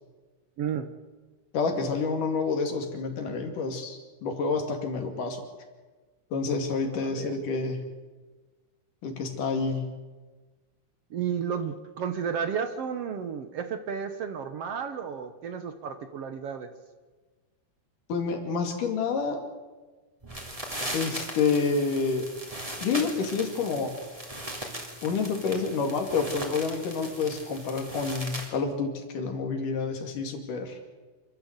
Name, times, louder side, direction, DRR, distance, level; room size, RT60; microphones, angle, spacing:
voice 1, 0.6-0.9 7.0-7.3 11.1-16.7, right 7 dB, 60° right, 8 dB, 1.7 m, -32 dB
voice 2, 1.5-5.4 6.3-7.8 9.0-9.9 18.1-19.4 20.9-22.3 22.8-23.9 25.0-30.8, left 4 dB, 85° left, 4 dB, 4.0 m, -28 dB
sound 1, 20.2-28.5, right 1 dB, 10° right, 3.0 m, -38 dB
27.5 x 13.0 x 8.1 m, 1.3 s
omnidirectional pair, 3.6 m